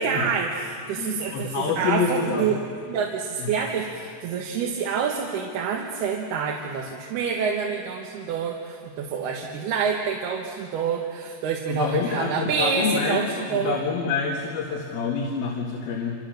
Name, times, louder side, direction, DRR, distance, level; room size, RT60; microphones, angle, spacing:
voice 1, 0.0-2.6 2.9-13.8, right 6 dB, 90° right, 0 dB, 3.6 m, -27 dB
voice 2, 1.0-2.6 3.4-3.5 11.7-13.2 13.5-16.2, left 5 dB, 75° left, -2 dB, 3.9 m, -27 dB
28.0 x 27.5 x 6.5 m, 2.3 s
omnidirectional pair, 4.4 m